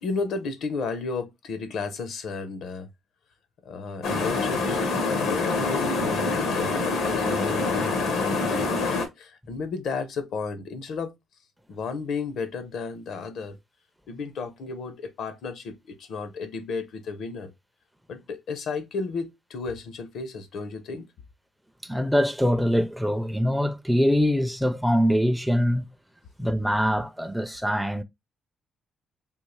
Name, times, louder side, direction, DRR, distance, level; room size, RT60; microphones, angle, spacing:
voice 1, 0.0-2.9 3.6-4.9 5.2-7.9 8.2-11.1 11.7-13.6 14.1-17.5 18.1-21.1, left 4 dB, 70° left, 0.7 m, -33 dB
sound 1, 4.0-9.1, left 3 dB, 90° left, 1.1 m, -25 dB
voice 2, 21.8-25.8 26.4-28.0, equal, ahead, 0.4 m, -23 dB
3.6 x 2.4 x 3.1 m
cardioid pair, 90°, 0 cm